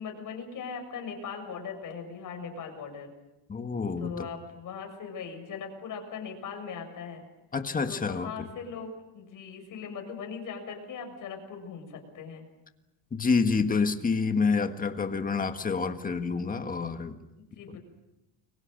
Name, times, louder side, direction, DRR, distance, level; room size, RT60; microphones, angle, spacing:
voice 1, 0.0-3.1 4.0-7.3 7.9-12.5 17.4-17.8, left 6 dB, 45° left, 4 dB, 6.9 m, -39 dB
voice 2, 3.5-4.3 7.5-8.5 13.1-17.2 17.7-17.8, left 4 dB, 20° left, 7 dB, 1.7 m, -28 dB
30.0 x 23.5 x 6.6 m, 0.95 s
cardioid pair, 155°, 45 cm